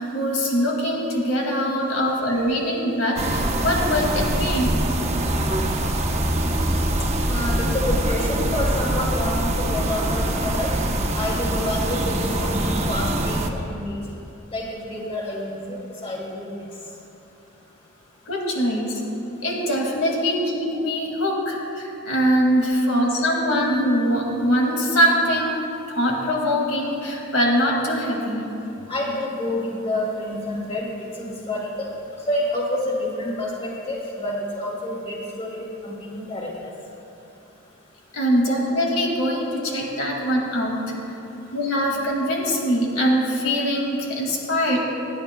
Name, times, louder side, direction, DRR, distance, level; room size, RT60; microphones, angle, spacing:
voice 1, 0.0-4.7 18.3-19.0 19.4-28.5 38.1-40.8 41.5-44.8, equal, 75° left, -1 dB, 2.2 m, -22 dB
sound 1, 3.2-13.5, right 1 dB, 30° right, 0.8 m, -23 dB
voice 2, 7.3-10.7 11.1-14.0 14.5-16.5 28.9-31.9 32.3-36.7, left 1 dB, 30° left, -4 dB, 2.5 m, -28 dB
26.5 x 10.5 x 2.2 m, 2.8 s
head